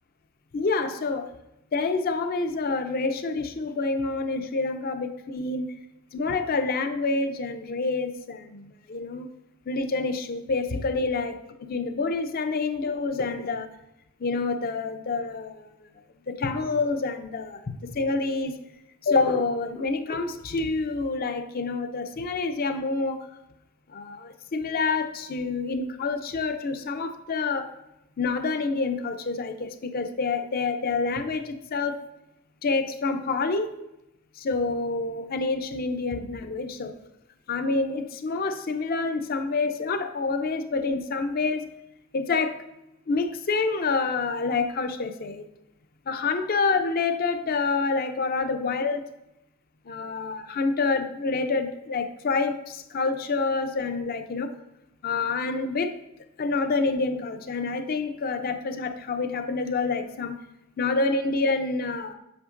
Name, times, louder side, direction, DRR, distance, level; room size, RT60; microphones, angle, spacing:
voice 1, 0.5-1.3 1.7-5.7 6.1-9.3 9.7-13.7 14.2-15.8 16.3-18.6 19.0-23.3 23.9-27.7 28.2-32.0 32.6-33.7 34.4-37.0 37.5-41.7 42.1-42.6 43.1-45.5 46.1-49.0 49.9-54.5 55.0-55.9 56.4-60.4 60.8-62.1, left 3 dB, 45° left, 8 dB, 0.5 m, -27 dB
7.8 x 5.8 x 2.5 m, 0.89 s
head